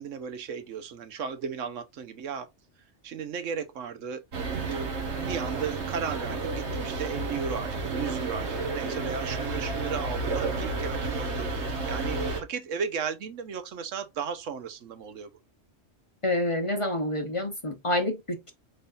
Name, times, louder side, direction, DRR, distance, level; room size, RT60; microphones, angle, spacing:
voice 1, 0.0-2.5 3.0-4.2 4.6-15.3, right 6 dB, 85° right, 1.2 m, -35 dB
sound 1, 4.3-12.4, right 3 dB, 65° right, 1.4 m, -31 dB
voice 2, 16.2-18.5, left 1 dB, 30° left, 0.7 m, -28 dB
5.3 x 4.0 x 2.5 m
omnidirectional pair, 1.3 m